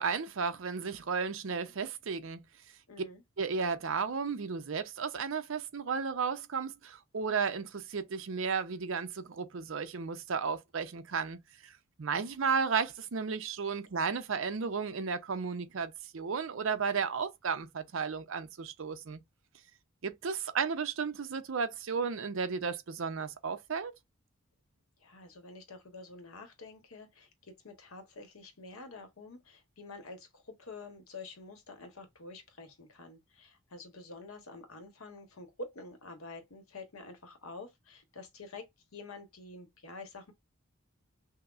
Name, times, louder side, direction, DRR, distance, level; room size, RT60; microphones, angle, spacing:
voice 1, 0.0-2.4 3.4-11.7 12.0-19.2 20.0-23.9, right 5 dB, 70° right, 0.6 m, -34 dB
voice 2, 2.9-3.2 25.0-38.7 38.9-40.3, left 3 dB, 90° left, 1.0 m, -48 dB
5.6 x 2.0 x 2.4 m
head